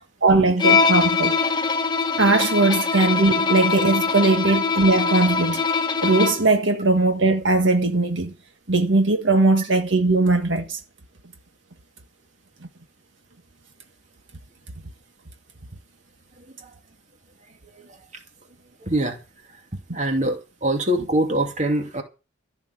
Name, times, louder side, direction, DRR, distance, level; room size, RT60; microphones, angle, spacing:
voice 1, 0.2-1.4 2.2-5.6 6.0-8.3 8.7-10.8, right 2 dB, 65° right, 1.8 m, -19 dB
Bowed string instrument, 0.6-6.5, left 5 dB, 20° left, 1.3 m, -22 dB
voice 2, 16.4-16.7 17.7-17.9 18.8-19.2 19.9-22.0, right 1 dB, 35° right, 2.7 m, -24 dB
14.5 x 6.9 x 8.5 m
head